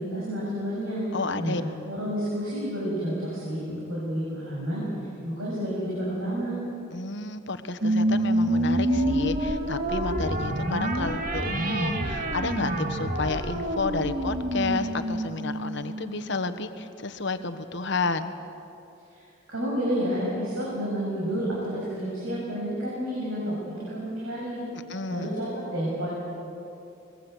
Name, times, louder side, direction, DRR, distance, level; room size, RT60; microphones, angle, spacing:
voice 1, 0.0-1.1 1.4-1.6 1.9-4.8 5.2-6.5 19.1-19.2 19.5-24.6 25.1-26.1, equal, 75° right, -6 dB, 7.2 m, -30 dB
voice 2, 1.1-1.6 6.9-18.3 24.9-25.3, left 3 dB, 60° left, 10 dB, 1.2 m, -31 dB
sound 1, 7.8-16.6, right 1 dB, 40° right, 1.9 m, -27 dB
24.5 x 21.5 x 8.1 m, 2.7 s
head